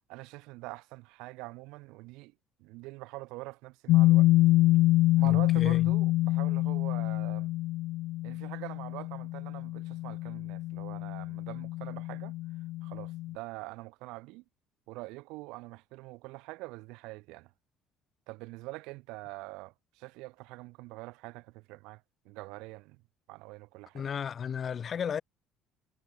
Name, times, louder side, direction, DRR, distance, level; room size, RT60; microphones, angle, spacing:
voice 1, 0.0-2.3 2.6-4.3 5.2-7.5 8.2-12.3 12.8-14.4 14.9-17.5 18.3-23.0 23.3-24.0, right 23 dB, 90° right, 7.7 m, -44 dB
sound 1, 3.9-13.3, left 17 dB, 75° left, 1.6 m, -26 dB
voice 2, 5.2-5.9 23.9-25.2, left 7 dB, 35° left, 7.9 m, -34 dB
cardioid pair, 135°, 0 cm